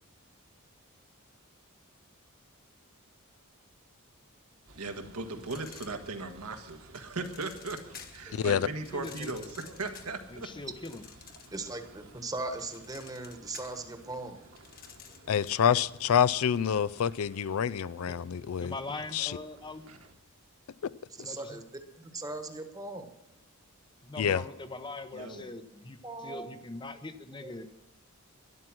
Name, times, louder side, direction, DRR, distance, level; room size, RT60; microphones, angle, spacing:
sound 1, 4.7-20.2, right 2 dB, 60° right, 1.6 m, -56 dB
voice 1, 4.8-10.5 19.9-20.0 25.1-25.5, right 3 dB, 85° right, 5 dB, 1.6 m, -38 dB
sound 2, 5.4-6.4 7.0-8.3 8.8-11.8 12.1-15.7, left 7 dB, 40° left, 1.4 m, -51 dB
voice 2, 8.3-8.7 15.3-18.7 19.1-19.4 24.2-24.4, left 8 dB, 70° left, 19 dB, 0.4 m, -27 dB
voice 3, 8.9-9.4 10.3-11.0 18.1-18.2 18.6-19.9 21.2-21.6 24.0-26.0 26.2-27.8, left 2 dB, 20° left, 10 dB, 0.7 m, -41 dB
voice 4, 11.5-14.4 21.2-21.6 21.9-23.1 26.0-26.5 27.4-27.5, right 2 dB, 15° right, 7 dB, 1.2 m, -39 dB
12.0 x 11.5 x 6.1 m, 0.90 s
head